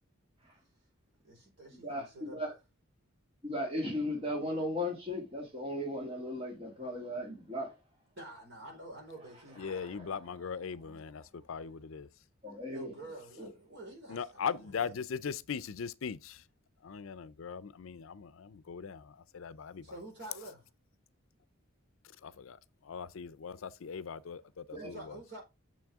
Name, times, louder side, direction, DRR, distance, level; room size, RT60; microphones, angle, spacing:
voice 1, 1.2-2.4 8.2-9.6 12.7-14.9 19.8-20.6 24.7-25.4, right 1 dB, 55° right, 4.6 m, -48 dB
voice 2, 1.8-2.5 3.4-7.7 9.6-10.1 12.4-12.9 13.4-13.5 24.7-24.9, left 1 dB, 25° right, 1.9 m, -37 dB
voice 3, 9.6-12.1 14.1-16.4 16.8-19.8 22.2-25.2, left 6 dB, 70° left, 0.5 m, -40 dB
6.9 x 6.2 x 3.6 m
head